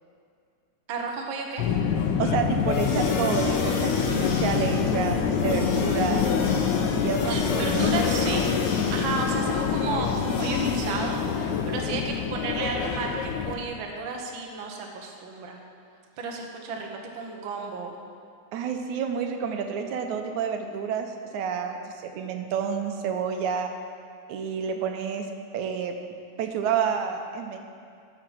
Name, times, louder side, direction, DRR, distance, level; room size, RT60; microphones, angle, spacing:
voice 1, 0.9-1.7 7.3-15.6 16.2-17.9, right 4 dB, 55° right, 1 dB, 1.5 m, -33 dB
Subway metro underground, 1.6-13.5, left 6 dB, 85° left, 2.1 m, -26 dB
voice 2, 2.2-6.3 6.9-7.9 18.5-23.7 24.3-25.3 25.5-25.9 26.4-27.6, right 7 dB, 85° right, 5 dB, 2.2 m, -29 dB
sound 1, 2.7-11.8, left 4 dB, 65° left, 1.9 m, -32 dB
13.5 x 5.9 x 6.1 m, 2.3 s
omnidirectional pair, 3.3 m